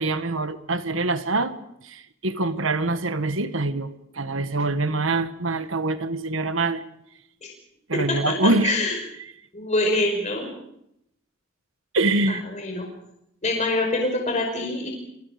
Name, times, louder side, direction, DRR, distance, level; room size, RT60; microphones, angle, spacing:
voice 1, 0.0-6.8 7.9-8.8 11.9-12.4, right 2 dB, 75° right, 10 dB, 1.6 m, -25 dB
voice 2, 8.6-8.9 9.5-10.5 12.5-12.8 13.4-14.9, left 2 dB, 35° left, 0 dB, 5.2 m, -25 dB
30.0 x 24.5 x 5.2 m, 0.77 s
head